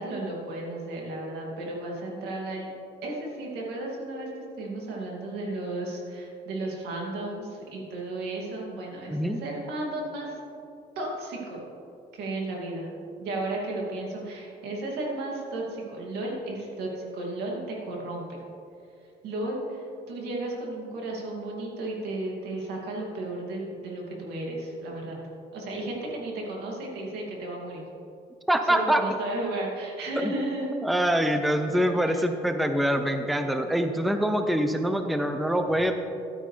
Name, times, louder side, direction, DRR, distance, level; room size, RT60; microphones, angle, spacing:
voice 1, 0.0-2.7 3.0-4.3 4.6-10.4 11.0-11.6 12.1-12.9 13.2-18.4 19.2-25.2 25.5-27.9 28.7-30.7 31.7-31.8 32.1-32.2, right 2 dB, 80° right, -2 dB, 2.5 m, -34 dB
voice 2, 9.1-9.4 28.5-29.0 30.2-30.3 30.8-35.9, equal, ahead, 7 dB, 0.5 m, -24 dB
13.0 x 9.1 x 3.3 m, 2.6 s
cardioid pair, 110°, 17 cm